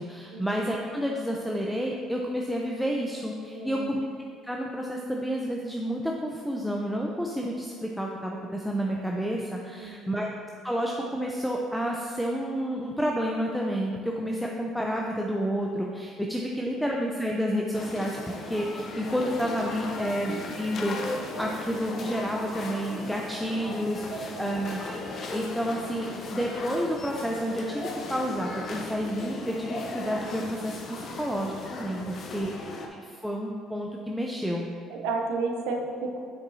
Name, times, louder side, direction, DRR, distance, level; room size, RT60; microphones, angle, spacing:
voice 1, 0.0-4.1 4.4-10.3 10.6-18.2 18.5-21.1 21.4-27.8 28.1-32.5 33.0-34.7, equal, ahead, -1 dB, 0.5 m, -30 dB
voice 2, 3.5-4.0 9.8-10.1 19.9-20.1 24.1-24.6 34.9-36.2, right 3 dB, 75° right, 2 dB, 0.6 m, -32 dB
sound 1, 17.7-32.9, left 2 dB, 50° left, 0.7 m, -37 dB
7.0 x 5.3 x 2.7 m, 2.3 s
hypercardioid pair, 65°, 0 cm